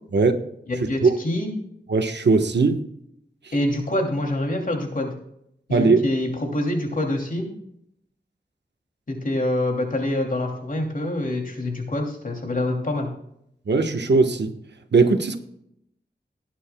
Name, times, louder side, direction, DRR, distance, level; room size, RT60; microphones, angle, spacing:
voice 1, 0.8-1.5 3.5-5.1 5.7-7.5 9.1-13.1, left 1 dB, 50° left, 1 dB, 2.9 m, -25 dB
voice 2, 1.9-2.8 5.7-6.0 13.7-14.5 14.9-15.4, right 4 dB, 80° right, 6 dB, 1.3 m, -19 dB
19.0 x 9.6 x 2.3 m, 0.75 s
wide cardioid pair, 85°, 18 cm